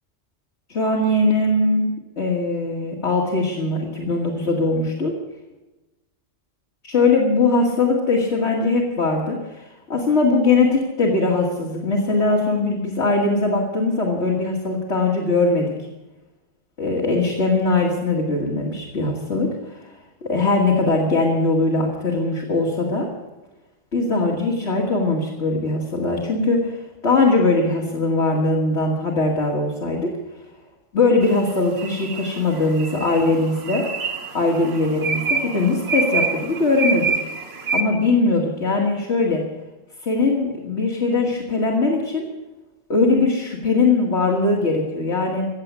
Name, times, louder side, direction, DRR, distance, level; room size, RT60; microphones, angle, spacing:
voice 1, 0.7-1.9 2.2-5.1 6.8-9.4 9.9-15.7 16.8-19.8 20.2-23.1 23.9-30.1 30.9-33.9 34.3-37.2 37.7-39.4 40.0-42.3 42.9-45.5, left 3 dB, 65° left, -3 dB, 2.6 m, -20 dB
sound 1, 31.2-37.8, right 4 dB, 60° right, 1.4 m, -27 dB
17.0 x 7.9 x 9.6 m, 1.1 s
omnidirectional pair, 1.2 m